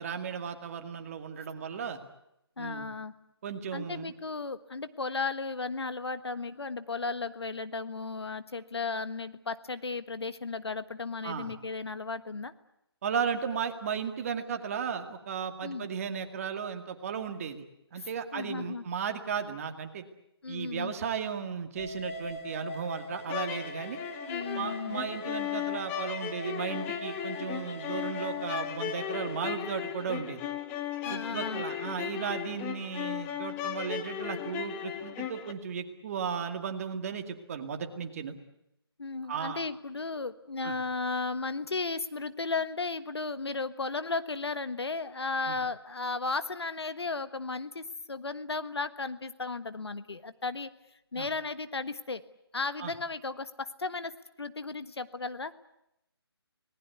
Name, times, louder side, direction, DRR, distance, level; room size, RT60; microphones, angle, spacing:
voice 1, 0.0-2.0 2.6-2.9 3.4-4.1 11.2-11.5 13.0-17.6 17.9-20.0 20.5-24.0 24.5-30.4 31.1-38.4 39.3-39.6 40.6-40.7 45.5-45.6 51.1-51.3 52.8-52.9, right 7 dB, 35° right, 7 dB, 2.2 m, -35 dB
voice 2, 2.6-3.1 3.7-12.5 15.6-15.9 18.0-18.8 20.4-20.9 24.3-25.0 31.0-31.7 39.0-50.7 51.1-52.2 52.5-54.1 54.4-55.5, left 4 dB, 75° left, 13 dB, 1.5 m, -35 dB
sound 1, 21.8-29.4, left 3 dB, 30° left, 4.4 m, -42 dB
sound 2, 23.2-35.5, left 10 dB, 15° left, 1.0 m, -36 dB
29.0 x 19.5 x 8.3 m, 0.84 s
figure-of-eight pair, 155°, 14 cm